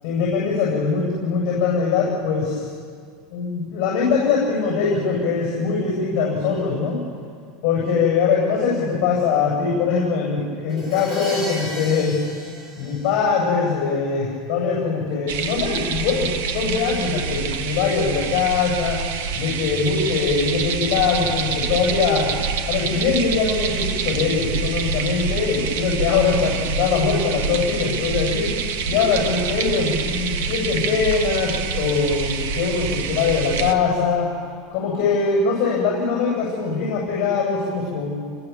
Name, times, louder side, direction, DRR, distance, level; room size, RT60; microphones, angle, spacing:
voice 1, 0.0-2.7 3.3-7.0 7.6-12.2 12.8-19.0 19.3-22.3 22.7-28.5 28.9-34.3 34.7-38.2, left 5 dB, 45° left, -3 dB, 7.8 m, -22 dB
Crash cymbal, 10.7-13.7, left 3 dB, 15° right, 4.1 m, -33 dB
sound 1, 15.3-33.7, right 6 dB, 80° right, 1.8 m, -26 dB
29.5 x 23.0 x 7.3 m, 2.1 s
supercardioid pair, 175°, 0 cm